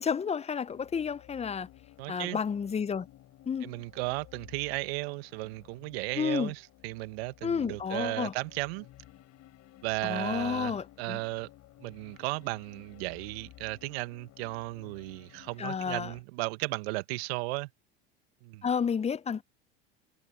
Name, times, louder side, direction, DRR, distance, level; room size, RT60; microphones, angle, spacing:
voice 1, 0.0-1.7 2.1-3.1 3.5-3.7 6.2-6.5 7.4-8.3 10.0-11.2 15.6-16.1 18.6-19.4, left 6 dB, 20° left, 0.7 m, -31 dB
sound 1, 0.6-16.2, left 14 dB, 50° left, 5.0 m, -55 dB
voice 2, 2.0-2.4 3.6-8.8 9.8-11.5 11.8-17.7 18.4-18.6, right 24 dB, 65° right, 1.6 m, -35 dB
hypercardioid pair, 80°, 33 cm